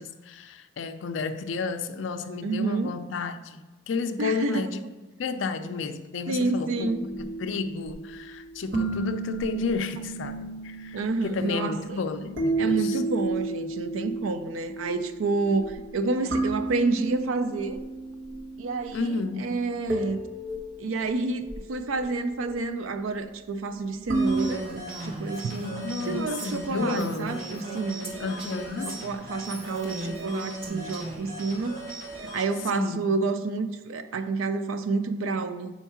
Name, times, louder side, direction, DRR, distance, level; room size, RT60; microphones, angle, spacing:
voice 1, 0.0-4.8 5.2-13.0 18.9-19.5 25.8-27.4 28.2-29.0 32.7-33.0, left 4 dB, 70° left, 0.4 m, -32 dB
voice 2, 2.4-2.9 4.2-4.6 6.3-7.0 10.9-12.0 12.6-17.8 18.6-20.2 20.8-28.1 28.9-31.8 32.3-35.7, right 3 dB, 85° right, 0.4 m, -29 dB
sound 1, 6.7-24.5, right 2 dB, 60° right, 1.1 m, -33 dB
sound 2, 24.1-32.5, right 2 dB, 45° right, 2.0 m, -40 dB
Female speech woman speaking, 24.3-31.3, equal, 30° right, 1.0 m, -38 dB
4.5 x 4.5 x 5.6 m
head